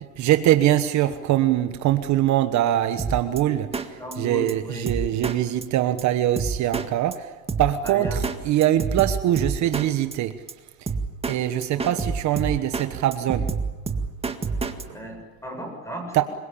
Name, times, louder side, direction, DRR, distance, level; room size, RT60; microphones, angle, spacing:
voice 1, 0.2-7.3 7.6-10.3 11.3-13.5 14.9-15.0 16.1-16.2, right 12 dB, 50° right, 9 dB, 1.3 m, -23 dB
Drum kit, 3.0-3.4 3.7-4.1 4.5-4.6 4.9-5.4 5.6-5.7 6.0-6.1 6.4-6.9 7.1-7.2 7.5-8.4 8.6-9.9 10.1-10.2 10.5-10.6 10.9-11.4 11.6-12.9 13.1-14.8, right 4 dB, 15° right, 1.9 m, -27 dB
voice 2, 4.0-4.9 7.8-8.3 11.7-11.9 14.9-16.2, equal, 10° left, 4 dB, 7.7 m, -35 dB
26.5 x 23.0 x 8.7 m, 1.2 s
cardioid pair, 140°, 35 cm